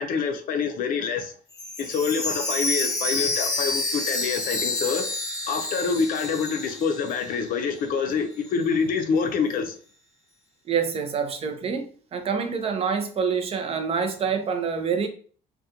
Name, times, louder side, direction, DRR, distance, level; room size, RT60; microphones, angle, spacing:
voice 1, 0.0-1.3 1.8-5.1 5.5-9.8, left 5 dB, 55° left, 0.5 m, -26 dB
Chime, 1.5-7.5 7.8-7.9 8.4-8.5, left 2 dB, 20° left, 0.7 m, -29 dB
voice 2, 10.7-15.1, right 6 dB, 35° right, 0.5 m, -26 dB
2.4 x 2.2 x 2.8 m
cardioid pair, 110°, 17 cm